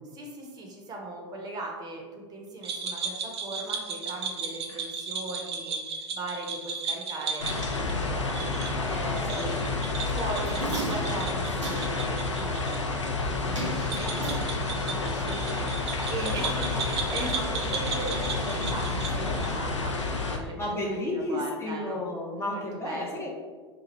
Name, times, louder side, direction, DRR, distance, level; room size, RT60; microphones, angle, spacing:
voice 1, 0.1-5.8 6.1-9.5 10.1-20.0 20.3-22.0 22.4-23.2, right 2 dB, 25° right, 0 dB, 0.7 m, -38 dB
sound 1, 2.6-12.8 13.0-13.1 13.8-19.6, right 5 dB, 60° right, 0.5 m, -36 dB
sound 2, 7.4-20.4, left 3 dB, 80° left, 0.5 m, -30 dB
sound 3, 10.1-12.2 13.5-15.0 15.3-15.4, right 1 dB, 90° right, 0.9 m, -36 dB
voice 2, 16.2-16.6 20.5-23.3, left 1 dB, 15° left, -2 dB, 0.6 m, -32 dB
2.9 x 2.3 x 4.0 m, 1.4 s
figure-of-eight pair, 90°, 15 cm